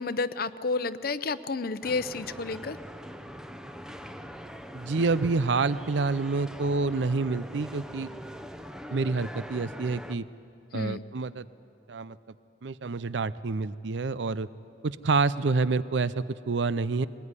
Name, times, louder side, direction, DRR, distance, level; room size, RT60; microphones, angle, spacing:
voice 1, 0.0-2.8 10.7-11.0, left 3 dB, 55° left, 14 dB, 0.7 m, -31 dB
sound 1, 1.8-10.2, equal, 5° right, 0.8 m, -42 dB
voice 2, 4.7-8.1 8.9-10.2 10.7-11.5 11.9-12.2 12.6-14.5 14.8-17.1, right 3 dB, 75° right, 17 dB, 0.6 m, -28 dB
22.0 x 20.0 x 9.7 m, 2.8 s
head